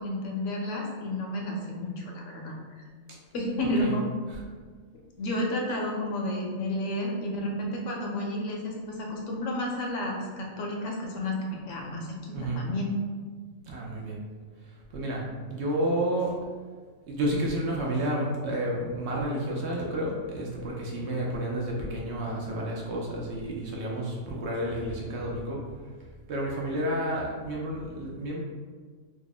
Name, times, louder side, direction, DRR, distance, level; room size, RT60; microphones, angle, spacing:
voice 1, 0.0-2.5 3.3-4.0 5.2-12.9, left 1 dB, 70° left, -1 dB, 0.9 m, -31 dB
voice 2, 3.6-3.9 12.3-12.6 13.7-14.2 14.9-15.2 15.5-16.3 17.1-25.6 26.3-28.4, right 1 dB, 65° right, -3 dB, 0.8 m, -30 dB
2.8 x 2.4 x 3.9 m, 1.5 s
omnidirectional pair, 1.4 m